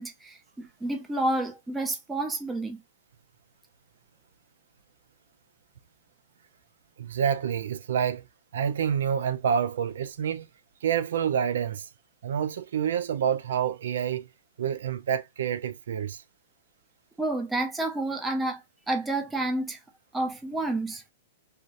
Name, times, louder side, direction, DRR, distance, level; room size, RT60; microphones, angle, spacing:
voice 1, 0.0-2.8 17.2-18.6 18.9-19.8 20.1-21.0, right 2 dB, 5° right, 0.4 m, -29 dB
voice 2, 7.0-8.3 8.5-10.5 10.8-11.9 12.2-14.3 14.6-16.2, right 8 dB, 75° right, 0.4 m, -28 dB
2.7 x 2.0 x 2.4 m
hypercardioid pair, 160°, 0 cm